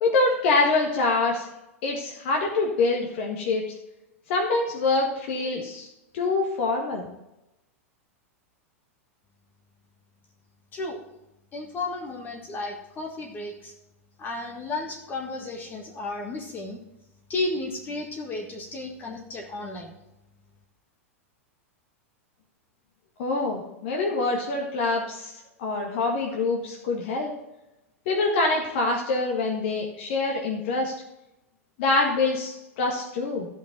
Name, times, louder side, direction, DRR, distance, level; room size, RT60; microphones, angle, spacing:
voice 1, 0.0-1.5 1.8-3.7 4.3-5.9 6.1-7.1 23.2-27.3 28.1-30.9 31.8-33.5, left 3 dB, 50° left, 0 dB, 1.8 m, -25 dB
voice 2, 11.5-13.7 14.2-16.8 17.3-19.9, left 2 dB, 25° left, 2 dB, 1.7 m, -33 dB
14.0 x 5.5 x 6.0 m, 0.93 s
figure-of-eight pair, 95°, 8 cm